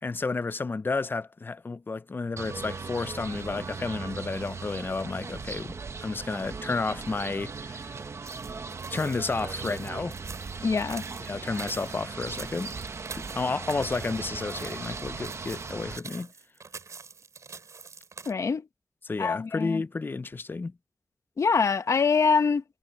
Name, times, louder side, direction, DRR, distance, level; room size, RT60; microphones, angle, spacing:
voice 1, 0.0-8.0 8.9-10.2 11.2-12.8 13.3-16.3 19.0-20.7, left 3 dB, 40° left, 0.5 m, -31 dB
sound 1, 2.4-16.0, right 4 dB, 65° right, 1.0 m, -38 dB
sound 2, 8.3-18.3, right 5 dB, 80° right, 4.3 m, -45 dB
voice 2, 10.6-11.0 18.3-18.7 19.2-19.8 21.4-22.6, left 5 dB, 75° left, 1.1 m, -24 dB
wide cardioid pair, 90°, 5 cm